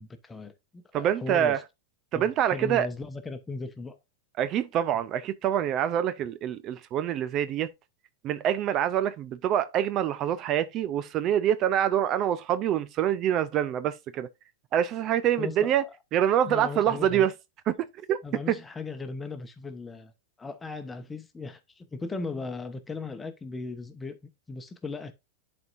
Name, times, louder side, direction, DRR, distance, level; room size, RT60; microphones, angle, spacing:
voice 1, 0.0-1.6 2.1-4.0 15.4-15.7 16.5-17.3 18.2-20.1 20.4-24.2 24.5-25.1, left 3 dB, 15° left, 1.0 m, -37 dB
voice 2, 0.9-1.6 2.1-2.9 4.4-7.7 8.2-14.3 14.7-15.8 16.1-17.3 17.7-17.8 18.1-18.2 18.5-18.6, right 10 dB, 40° right, 0.4 m, -25 dB
10.5 x 4.4 x 2.5 m
hypercardioid pair, 110°, 0 cm